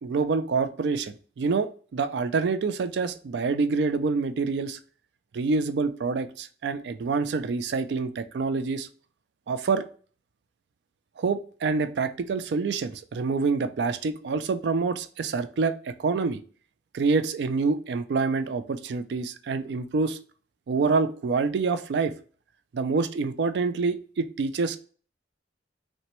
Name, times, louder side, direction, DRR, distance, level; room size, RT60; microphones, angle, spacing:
voice 1, 0.0-4.8 5.3-8.9 9.5-9.8 11.2-16.4 16.9-20.2 20.7-22.1 22.7-24.8, right 4 dB, 65° right, 11 dB, 0.4 m, -26 dB
5.7 x 2.1 x 3.0 m, 0.42 s
head